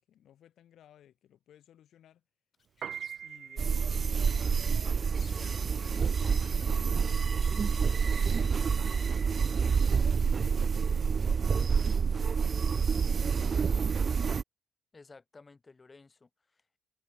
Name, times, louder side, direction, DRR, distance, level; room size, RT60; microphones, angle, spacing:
voice 1, 0.0-2.2 3.2-4.1 4.9-11.6 12.1-13.6, left 11 dB, 70° left, 4.2 m, -61 dB
sound 1, 2.5-3.3 3.6-4.6 5.1-5.7 6.0-6.7 7.4-8.5 9.7-9.9, left 6 dB, 45° left, 2.1 m, -58 dB
Piano, 2.7-13.1, right 8 dB, 60° right, 1.8 m, -47 dB
sound 2, 3.6-14.4, right 6 dB, 40° right, 0.3 m, -28 dB
voice 2, 14.9-16.8, left 3 dB, 25° left, 6.1 m, -55 dB
cardioid pair, 90°, 0 cm